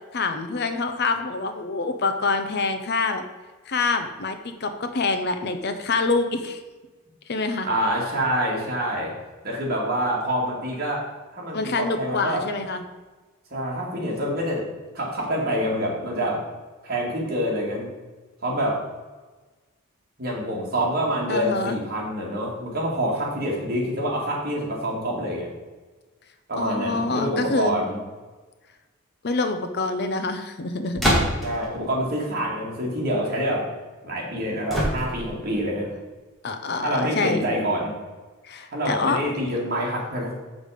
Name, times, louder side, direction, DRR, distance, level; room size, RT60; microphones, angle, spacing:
voice 1, 0.1-3.2 3.7-6.6 7.3-7.7 11.5-12.8 21.3-21.8 26.6-27.8 29.2-31.2 36.4-37.4 38.4-39.2, left 3 dB, 50° left, 8 dB, 0.7 m, -26 dB
voice 2, 7.6-9.1 9.4-11.0 11.3-12.4 13.5-14.7 14.9-16.4 16.8-17.9 18.4-18.8 20.2-25.5 26.5-28.0 31.4-33.6 34.0-35.9 36.8-37.9 38.7-40.3, equal, 45° right, -3 dB, 2.5 m, -26 dB
sound 1, 31.0-31.6 34.7-35.4, equal, ahead, 2.1 m, -23 dB
7.2 x 6.5 x 5.1 m, 1.3 s
head